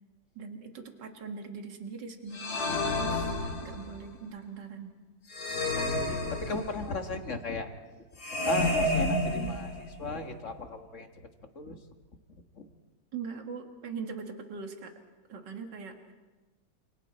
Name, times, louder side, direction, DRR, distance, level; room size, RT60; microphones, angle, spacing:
voice 1, 0.4-3.4 3.6-4.9 13.1-14.9 15.3-16.1, right 5 dB, 60° right, 4 dB, 2.5 m, -41 dB
sound 1, 2.3-4.0 5.3-7.0 8.2-10.0, left 1 dB, 70° left, 3.2 m, -30 dB
voice 2, 5.7-7.7 8.0-8.1 8.4-11.1 11.5-11.8 12.6-12.7, left 3 dB, 40° left, 5 dB, 1.8 m, -36 dB
28.5 x 28.0 x 4.3 m, 1.2 s
omnidirectional pair, 2.2 m